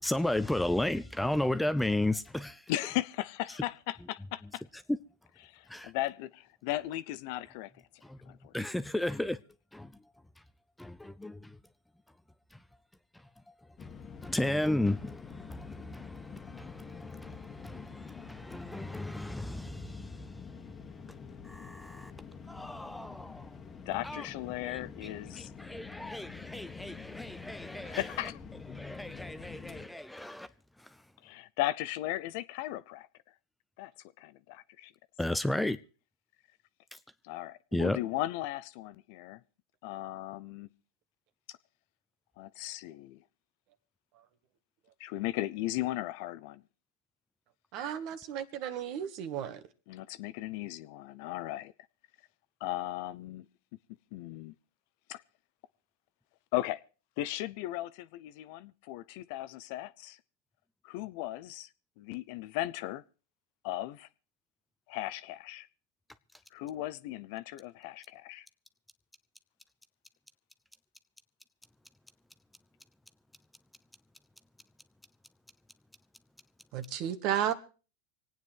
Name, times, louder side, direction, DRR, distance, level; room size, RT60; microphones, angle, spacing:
voice 1, 0.0-2.6 4.9-5.0 5.7-5.9 8.0-8.2 8.5-9.4 9.7-9.9 10.8-11.6 13.8-13.9 14.2-20.2 21.4-22.1 22.5-23.5 24.0-24.2 24.6-24.8 25.3-28.0 28.7-30.5 35.2-35.8 37.7-38.0, left 1 dB, 5° left, 0.7 m, -34 dB
voice 2, 2.7-4.6 5.4-7.7 8.3-8.5 23.9-25.5 27.7-28.4 31.2-33.1 33.8-33.9 34.2-34.9 37.2-39.4 39.8-40.7 42.4-43.2 45.0-46.6 49.9-51.7 52.6-53.5 54.1-54.5 55.1-55.2 56.5-56.8 57.2-60.2 60.8-61.7 62.0-63.0 63.6-64.1 64.9-65.7 66.5-68.5, left 15 dB, 60° left, 0.7 m, -36 dB
sound 1, 13.8-29.9, left 5 dB, 25° left, 1.5 m, -47 dB
voice 3, 47.7-49.6 76.7-77.5, right 10 dB, 50° right, 1.6 m, -33 dB
25.0 x 9.3 x 4.6 m
hypercardioid pair, 105°, 0 cm